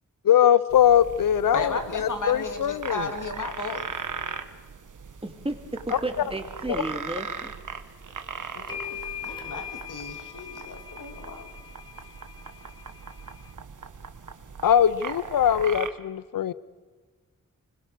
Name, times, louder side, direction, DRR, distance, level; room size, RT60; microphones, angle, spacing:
voice 1, 0.2-1.7 2.0-3.1 14.6-16.5, left 9 dB, 90° left, 17 dB, 0.6 m, -21 dB
sound 1, 0.7-15.9, right 5 dB, 65° right, 1.3 m, -39 dB
voice 2, 1.5-3.9 8.5-11.5, left 3 dB, 70° left, 6 dB, 2.3 m, -34 dB
voice 3, 5.2-7.5, right 2 dB, 15° right, 5 dB, 2.4 m, -33 dB
sound 2, 8.1-8.2 8.7-13.5, left 8 dB, 15° left, 2.3 m, -41 dB
25.0 x 21.0 x 6.7 m, 1.4 s
wide cardioid pair, 80°, 32 cm